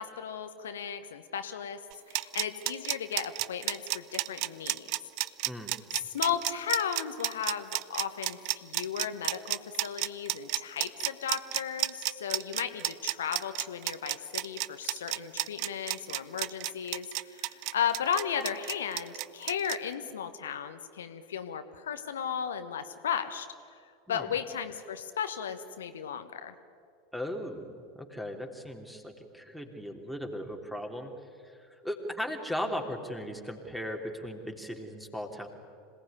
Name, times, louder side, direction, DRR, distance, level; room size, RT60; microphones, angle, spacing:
voice 1, 0.0-1.8 2.1-4.9 6.1-23.5 24.1-26.5, left 8 dB, 70° left, 8 dB, 1.2 m, -35 dB
sound 1, 1.9-19.8, right 20 dB, 50° right, 0.6 m, -31 dB
voice 2, 5.4-5.8 24.1-24.3 27.1-27.7 27.9-31.1 31.4-31.6 31.8-35.5, equal, ahead, 3 dB, 3.1 m, -37 dB
26.0 x 18.5 x 9.7 m, 2.4 s
figure-of-eight pair, 80°, 0 cm